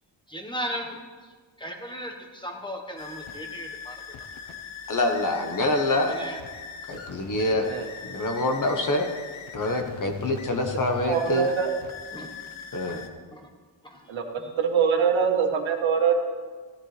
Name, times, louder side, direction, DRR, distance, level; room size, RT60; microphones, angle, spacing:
voice 1, 0.3-1.3 1.6-4.0 6.1-6.4 12.1-12.3 12.8-12.9 13.3-13.5 13.8-14.5, equal, 10° left, 2 dB, 1.3 m, -37 dB
sound 1, 3.0-13.1, left 6 dB, 75° left, 1.1 m, -40 dB
voice 2, 4.9-6.2 6.9-7.7 8.0-9.1 9.5-11.5 12.7-13.0, left 2 dB, 40° left, 4 dB, 1.2 m, -26 dB
voice 3, 7.5-7.9 11.0-11.7 14.1-14.2 14.6-16.2, right 7 dB, 75° right, 3 dB, 1.5 m, -23 dB
16.0 x 11.0 x 3.3 m, 1.5 s
wide cardioid pair, 155°, 48 cm